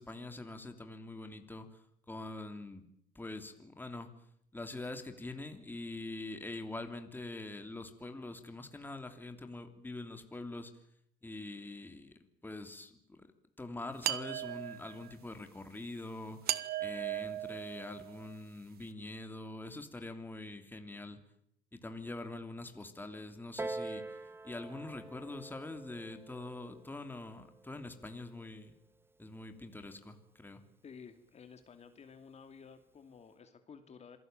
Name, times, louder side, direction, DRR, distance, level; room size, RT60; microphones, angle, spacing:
voice 1, 0.0-1.7 2.1-2.8 3.1-4.1 4.5-10.7 11.2-12.1 12.4-13.3 13.6-21.2 21.7-24.2 24.4-28.7 29.2-30.6, left 2 dB, 10° left, 7 dB, 3.1 m, -44 dB
sound 1, 14.0-15.1 16.5-18.3, right 13 dB, 65° right, 1.4 m, -37 dB
Piano, 23.6-28.8 29.6-29.7, right 2 dB, 15° right, 1.3 m, -46 dB
voice 2, 30.8-34.2, left 6 dB, 40° left, 8 dB, 2.6 m, -53 dB
27.0 x 18.5 x 9.2 m, 0.71 s
cardioid pair, 110°, 17 cm